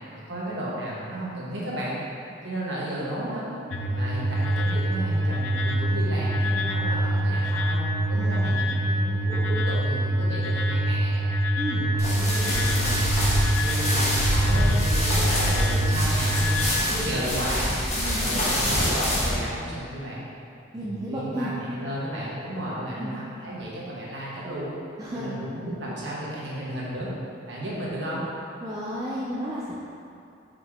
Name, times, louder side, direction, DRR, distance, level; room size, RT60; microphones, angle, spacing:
voice 1, 0.1-2.0 2.4-3.5 3.9-11.3 11.7-17.7 18.2-20.2 20.7-24.8 25.1-27.1 27.5-28.2, right 1 dB, 65° right, -6 dB, 1.4 m, -33 dB
sound 1, 3.7-16.7, right 1 dB, 90° left, 0.5 m, -25 dB
voice 2, 8.1-8.6 11.6-11.8 18.0-18.5 20.7-21.5 23.0-23.2 25.0-25.4 28.6-29.8, equal, 20° right, -7 dB, 0.5 m, -33 dB
sound 2, 12.0-19.3, left 1 dB, 35° left, 1.3 m, -25 dB
5.7 x 5.0 x 3.6 m, 2.5 s
head